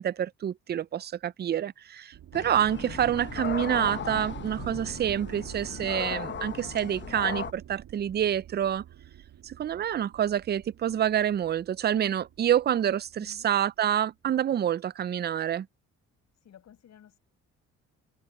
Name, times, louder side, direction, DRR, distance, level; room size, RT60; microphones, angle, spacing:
voice 1, 0.0-8.8 9.4-15.7, right 10 dB, 35° right, 0.4 m, -27 dB
sound 1, 2.1-13.6, right 11 dB, 75° right, 2.5 m, -46 dB
sound 2, 2.3-7.5, left 7 dB, 40° left, 1.0 m, -37 dB
voice 2, 13.2-13.5 16.3-17.2, left 9 dB, 60° left, 6.7 m, -54 dB
cardioid pair, 90°, 30 cm